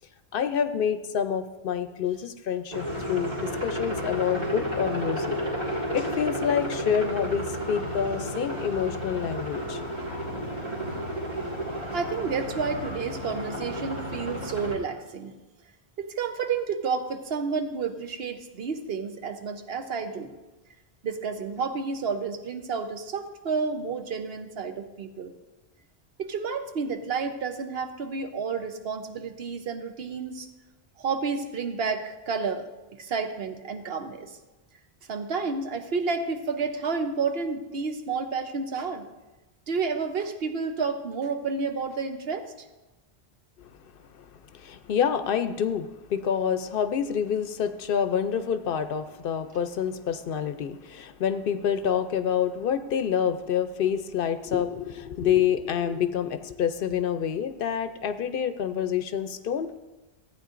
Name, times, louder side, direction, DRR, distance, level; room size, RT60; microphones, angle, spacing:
voice 1, 0.3-5.4 5.9-9.8 43.6-43.7 44.2-44.3 44.5-59.8, left 8 dB, 65° left, 10 dB, 0.7 m, -27 dB
sound 1, 2.7-14.7, equal, 45° right, 2.1 m, -32 dB
voice 2, 11.9-15.3 16.0-20.3 21.0-25.3 26.2-30.5 31.0-34.3 35.1-39.1 39.7-42.7, right 5 dB, 70° right, 7 dB, 1.0 m, -30 dB
15.0 x 8.9 x 2.5 m, 1.1 s
omnidirectional pair, 1.1 m